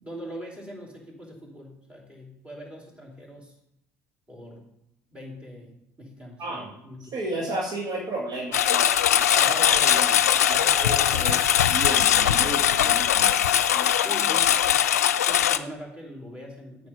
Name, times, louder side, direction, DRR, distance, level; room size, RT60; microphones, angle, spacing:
voice 1, 0.0-3.6 4.3-4.7 5.1-7.1 9.4-9.6 14.0-14.9 15.3-16.9, equal, 15° right, -2 dB, 3.7 m, -42 dB
voice 2, 6.4-6.7 7.1-8.9 9.1-13.4 13.7-13.9, right 2 dB, 50° right, 0 dB, 1.7 m, -33 dB
Engine, 8.5-15.6, left 10 dB, 90° left, 0.3 m, -21 dB
8.6 x 6.3 x 5.5 m, 0.81 s
hypercardioid pair, 65°, 8 cm